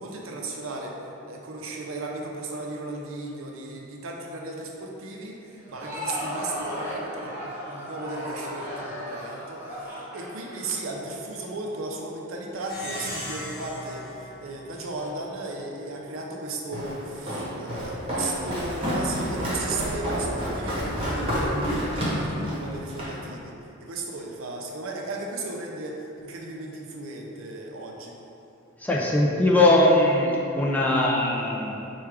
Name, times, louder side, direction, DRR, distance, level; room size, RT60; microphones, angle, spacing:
voice 1, 0.0-28.2, right 2 dB, 75° right, 0 dB, 0.6 m, -35 dB
Crowd, 5.6-11.5, equal, 10° right, 1.1 m, -35 dB
Plucked string instrument, 12.6-15.4, equal, 50° left, 1.2 m, -38 dB
Walk footsteps, 16.7-23.2, equal, 30° right, 0.9 m, -29 dB
voice 2, 28.8-31.9, left 1 dB, 10° left, -3 dB, 0.4 m, -21 dB
4.6 x 2.3 x 4.7 m, 2.9 s
head